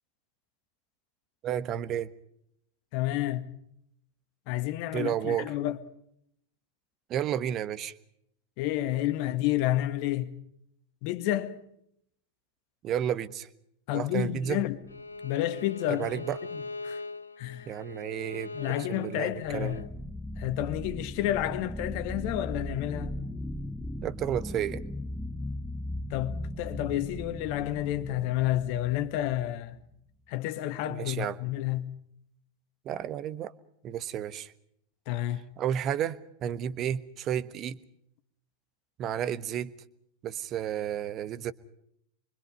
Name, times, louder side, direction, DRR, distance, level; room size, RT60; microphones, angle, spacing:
voice 1, 1.4-2.1 4.9-5.5 7.1-8.0 12.8-13.5 13.9-14.6 15.9-16.4 17.7-19.8 24.0-24.8 30.9-31.4 32.8-33.5 33.8-34.5 35.6-37.8 39.0-39.7 40.2-41.5, right 10 dB, 30° right, 1.2 m, -32 dB
voice 2, 2.9-3.5 4.5-5.8 8.6-10.3 11.0-11.6 13.9-14.8 15.2-16.2 16.5-17.0 17.4-17.7 18.5-19.8 20.4-23.2 26.1-29.8 30.3-31.9 35.1-35.4, left 14 dB, 45° left, 1.7 m, -30 dB
sound 1, 14.5-15.0 19.3-29.5, left 1 dB, 5° left, 1.1 m, -38 dB
Bowed string instrument, 14.9-19.9, left 3 dB, 80° left, 1.0 m, -41 dB
26.5 x 24.5 x 5.4 m
figure-of-eight pair, 90°, 0 cm